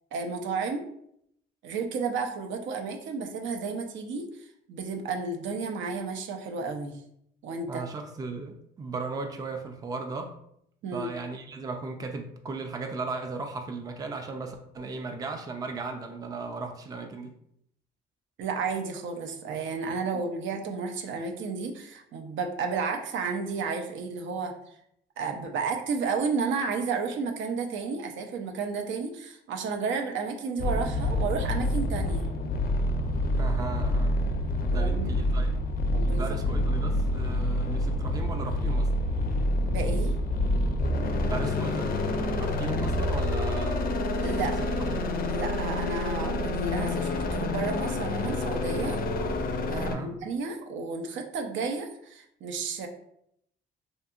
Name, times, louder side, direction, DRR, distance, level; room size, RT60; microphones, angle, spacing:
voice 1, 0.1-0.9 1.6-7.0 7.4-7.8 10.8-11.1 18.4-24.5 25.2-32.3 34.7-35.1 35.9-36.2 36.5-36.6 39.6-40.1 44.2-44.5 45.3-49.0 49.7-52.9, right 4 dB, 75° right, 4 dB, 0.5 m, -32 dB
voice 2, 7.7-10.4 10.9-17.3 20.1-20.2 33.3-34.2 34.7-35.5 36.0-38.9 41.2-42.0 42.4-43.9 44.4-44.5 44.8-45.0 49.7-50.2, right 3 dB, 20° right, 5 dB, 0.3 m, -36 dB
sound 1, 30.6-50.0, left 1 dB, 50° left, 0.4 m, -27 dB
2.8 x 2.5 x 2.3 m, 0.73 s
cardioid pair, 90°, 20 cm